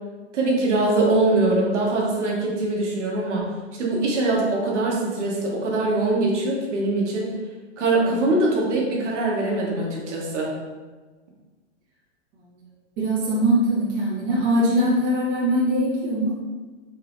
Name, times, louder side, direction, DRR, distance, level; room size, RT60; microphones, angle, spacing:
voice 1, 0.3-3.5 3.8-7.3 7.8-10.5, right 2 dB, 75° right, -3 dB, 1.2 m, -22 dB
voice 2, 13.0-16.3, equal, 25° right, -7 dB, 1.1 m, -21 dB
3.9 x 3.4 x 2.5 m, 1.3 s
hypercardioid pair, 155°, 36 cm